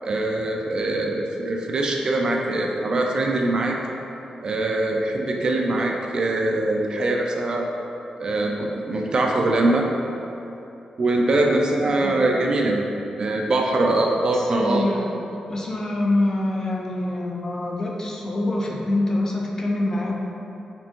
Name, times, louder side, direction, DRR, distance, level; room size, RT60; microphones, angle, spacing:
voice 1, 0.0-3.8 4.4-7.7 8.2-9.9 11.0-12.8 13.2-14.9, right 2 dB, 40° right, 1 dB, 0.3 m, -22 dB
voice 2, 14.3-15.1 15.5-20.1, left 1 dB, 25° left, -1 dB, 0.4 m, -25 dB
4.3 x 3.3 x 2.9 m, 2.9 s
wide cardioid pair, 170°, 2 cm